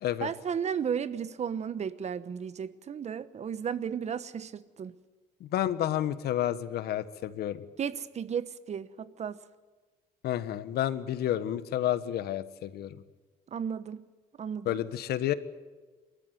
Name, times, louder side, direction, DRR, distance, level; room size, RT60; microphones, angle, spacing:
voice 1, 0.2-4.9 7.8-9.4 13.5-14.1 14.4-14.8, right 7 dB, 40° right, 1.1 m, -34 dB
voice 2, 5.4-7.6 10.2-13.0 14.6-15.3, left 12 dB, 70° left, 1.4 m, -30 dB
28.5 x 13.5 x 9.6 m
cardioid pair, 110°, 17 cm